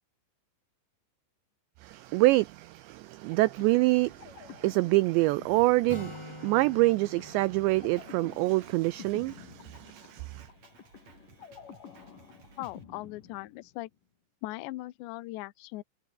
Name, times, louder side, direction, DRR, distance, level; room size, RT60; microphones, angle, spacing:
voice 1, 1.8-10.5, right 20 dB, 85° right, 2.5 m, -26 dB
sound 1, 3.3-14.0, left 7 dB, 45° left, 4.2 m, -51 dB
Acoustic guitar, 5.9-9.6, left 1 dB, 5° left, 2.5 m, -47 dB
Drum kit, 7.5-12.8, right 6 dB, 35° right, 3.9 m, -58 dB
voice 2, 12.6-13.9 14.4-15.8, left 18 dB, 75° left, 3.0 m, -39 dB
omnidirectional pair, 5.7 m